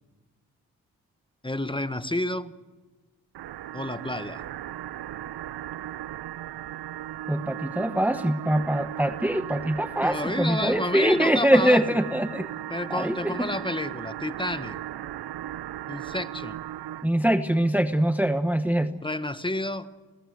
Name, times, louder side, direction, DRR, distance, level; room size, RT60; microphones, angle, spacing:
voice 1, 1.4-2.5 3.7-4.4 10.0-12.0 12.7-14.8 15.9-16.6 19.0-19.9, left 1 dB, 10° left, 11 dB, 1.4 m, -30 dB
sound 1, 3.3-17.1, right 13 dB, 75° right, 0.7 m, -37 dB
voice 2, 7.3-12.5 12.9-13.5 17.0-19.0, right 1 dB, 5° right, 9 dB, 1.1 m, -23 dB
28.0 x 18.5 x 8.1 m, 1.3 s
cardioid pair, 55°, 39 cm